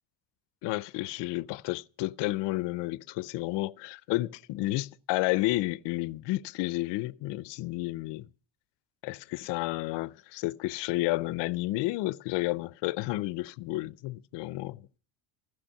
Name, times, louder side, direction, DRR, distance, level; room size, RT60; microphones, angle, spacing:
voice 1, 0.6-8.3 9.0-14.8, left 19 dB, 65° left, 0.6 m, -31 dB
15.0 x 6.2 x 9.9 m
cardioid pair, 135°, 45 cm